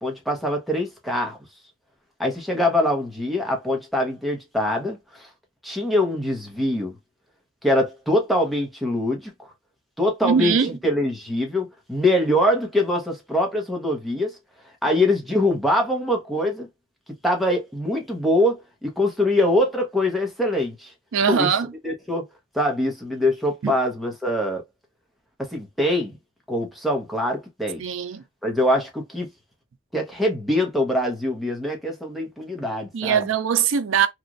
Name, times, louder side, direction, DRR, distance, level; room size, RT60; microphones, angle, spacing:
voice 1, 0.0-1.4 2.2-5.3 5.6-7.0 7.6-9.5 10.0-14.3 14.8-16.7 17.2-20.9 21.3-21.5 21.8-22.3 22.5-24.6 25.4-26.1 26.5-27.8 28.4-29.3 29.9-33.3, left 1 dB, ahead, 0.8 m, -23 dB
voice 2, 10.2-10.8 21.1-21.7 23.6-23.7 27.8-28.2 32.9-34.1, right 7 dB, 75° right, 0.5 m, -21 dB
3.0 x 2.4 x 2.4 m
head